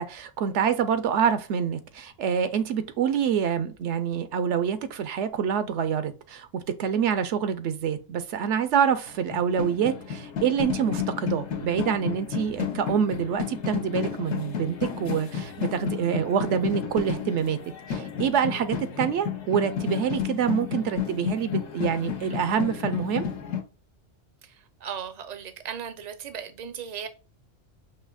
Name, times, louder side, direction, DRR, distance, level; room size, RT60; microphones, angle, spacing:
voice 1, 0.0-17.6 17.9-23.2, right 7 dB, 75° right, 0.9 m, -26 dB
sound 1, 9.1-23.6, left 8 dB, 70° left, 1.1 m, -32 dB
voice 2, 24.4-27.1, right 8 dB, 45° right, 0.6 m, -37 dB
5.5 x 2.8 x 2.3 m
omnidirectional pair, 1.2 m